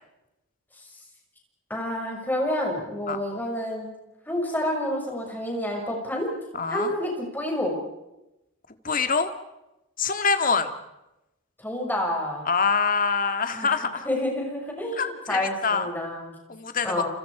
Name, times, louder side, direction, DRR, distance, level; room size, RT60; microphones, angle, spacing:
voice 1, 1.7-3.9 4.3-6.3 6.7-7.7 11.6-12.5 13.5-13.7 14.0-16.3 16.8-17.1, left 1 dB, 10° left, 0 dB, 6.6 m, -29 dB
voice 2, 6.5-6.9 8.8-9.3 10.0-10.7 12.5-14.1 15.0-15.9 16.5-17.1, left 5 dB, 40° left, 8 dB, 1.9 m, -25 dB
29.0 x 28.5 x 5.0 m, 0.93 s
head